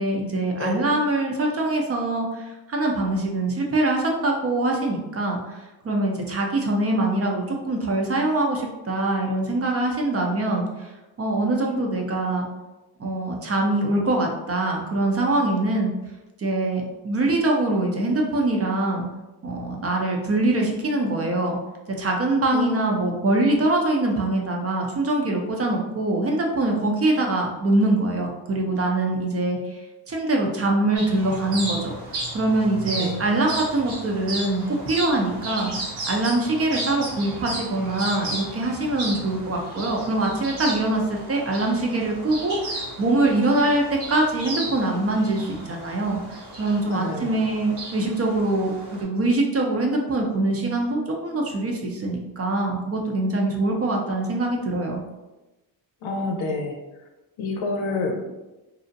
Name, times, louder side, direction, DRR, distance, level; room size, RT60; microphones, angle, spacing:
voice 1, 0.0-10.9 11.2-12.5 13.0-15.9 16.4-19.1 19.4-21.6 22.0-55.0, right 2 dB, 30° right, 0 dB, 0.5 m, -23 dB
voice 2, 22.5-22.9 33.0-33.2 46.9-47.4 56.0-57.0 57.4-58.2, left 3 dB, 70° left, 2 dB, 0.7 m, -28 dB
sound 1, 31.0-49.0, right 2 dB, 85° right, 1.1 m, -34 dB
2.6 x 2.1 x 2.6 m, 1.0 s
supercardioid pair, 70°, 49 cm